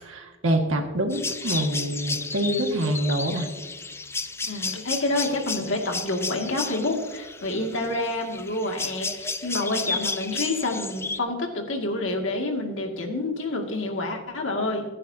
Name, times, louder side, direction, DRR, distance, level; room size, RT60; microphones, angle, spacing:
voice 1, 0.0-3.5, right 1 dB, 90° right, 3 dB, 1.9 m, -26 dB
sound 1, 1.1-11.2, left 4 dB, 15° left, 0.5 m, -33 dB
voice 2, 4.4-14.8, left 2 dB, 70° left, 2 dB, 2.3 m, -28 dB
25.5 x 10.0 x 2.8 m, 1.3 s
head